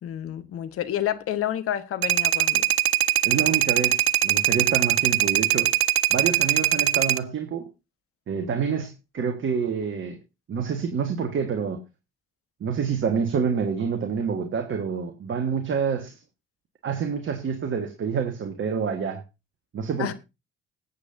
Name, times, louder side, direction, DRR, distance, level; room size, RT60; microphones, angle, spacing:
voice 1, 0.0-2.6 20.0-20.1, left 11 dB, 45° left, 1.3 m, -29 dB
sound 1, 2.0-7.2, right 15 dB, 80° right, 0.5 m, -21 dB
voice 2, 3.2-5.7 6.1-7.7 8.3-10.2 10.5-11.8 12.6-16.2 16.8-19.2 19.7-20.1, right 6 dB, 40° right, 1.5 m, -27 dB
21.0 x 8.4 x 2.7 m
figure-of-eight pair, 55°, 31 cm